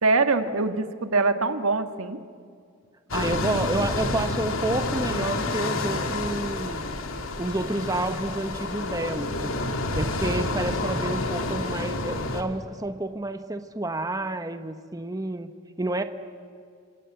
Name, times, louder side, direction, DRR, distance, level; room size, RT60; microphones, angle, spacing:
voice 1, 0.0-2.2, right 3 dB, 85° right, 8 dB, 1.7 m, -23 dB
sound 1, 3.1-12.4, left 2 dB, 75° left, 2.5 m, -29 dB
voice 2, 3.1-6.9 7.4-9.6 9.9-16.0, right 2 dB, 15° right, 9 dB, 1.0 m, -30 dB
27.5 x 26.0 x 8.0 m, 2.2 s
head